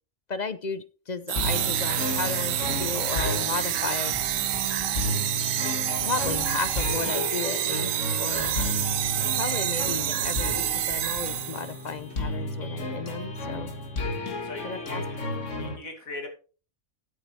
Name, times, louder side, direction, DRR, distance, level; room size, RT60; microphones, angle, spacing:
voice 1, 0.3-4.1 6.0-7.9 8.2-8.7 9.3-13.7 14.6-15.0, left 5 dB, 45° left, 13 dB, 0.6 m, -34 dB
sound 1, 1.3-11.8, right 12 dB, 75° right, 1.0 m, -28 dB
sound 2, 1.4-15.8, left 2 dB, 60° left, 2.2 m, -33 dB
sound 3, 4.1-12.6, right 1 dB, 30° right, 2.8 m, -47 dB
voice 2, 14.4-15.0 15.6-16.3, left 2 dB, 90° left, 2 dB, 2.9 m, -39 dB
14.0 x 7.8 x 3.2 m, 0.36 s
omnidirectional pair, 1.4 m